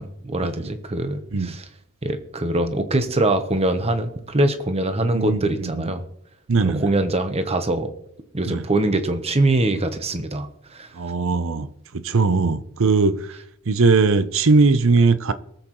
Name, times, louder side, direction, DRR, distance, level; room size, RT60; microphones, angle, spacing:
voice 1, 0.0-1.6 2.0-6.0 6.7-7.9 8.3-10.9, right 2 dB, 30° right, 1.0 m, -23 dB
voice 2, 5.0-5.9 6.5-6.9 8.5-8.7 10.9-13.4 13.7-15.3, right 4 dB, 60° right, 0.7 m, -20 dB
23.0 x 7.7 x 3.1 m
head